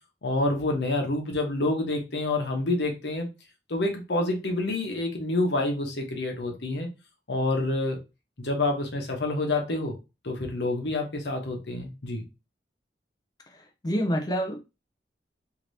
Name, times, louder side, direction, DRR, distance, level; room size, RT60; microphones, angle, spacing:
voice 1, 0.2-3.3 3.7-6.9 7.3-8.0 8.4-9.9 10.2-12.2, left 2 dB, 75° left, 3 dB, 0.9 m, -28 dB
voice 2, 13.5-14.6, equal, 25° left, 2 dB, 0.4 m, -28 dB
2.8 x 2.7 x 3.2 m, 0.27 s
head